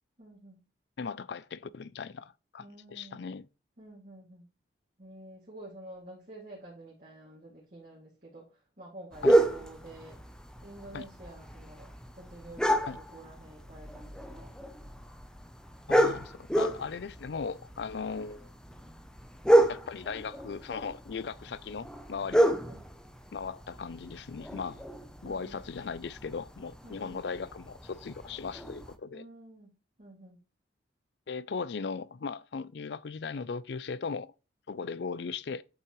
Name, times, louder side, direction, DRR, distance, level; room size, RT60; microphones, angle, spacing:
voice 1, 0.2-0.6 2.6-3.3 3.8-4.5 5.0-10.2 10.6-11.9 12.2-14.5 22.4-22.9 25.2-25.6 26.8-27.2 29.1-29.7 30.0-30.4, right 1 dB, 45° right, 2.4 m, -49 dB
voice 2, 1.0-3.5 9.2-9.4 10.9-11.0 12.9-13.0 15.9-18.5 19.7-22.6 23.3-24.8 25.2-29.2 31.3-34.3 34.7-35.6, left 5 dB, 65° left, 0.4 m, -38 dB
sound 1, 9.1-28.9, right 1 dB, 5° left, 0.6 m, -31 dB
8.5 x 5.7 x 3.1 m
head